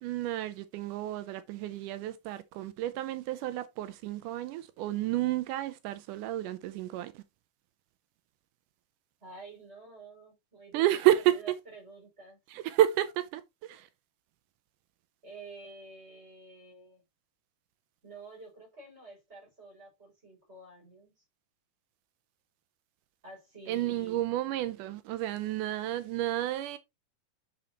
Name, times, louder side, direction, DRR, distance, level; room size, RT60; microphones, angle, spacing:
voice 1, 0.0-7.2 10.7-11.4 12.5-13.9 23.7-26.8, right 13 dB, 85° right, 2.2 m, -30 dB
voice 2, 9.2-12.4 15.2-17.0 18.0-21.2 23.2-24.2, right 3 dB, 20° right, 5.8 m, -49 dB
7.9 x 6.5 x 2.9 m
omnidirectional pair, 3.6 m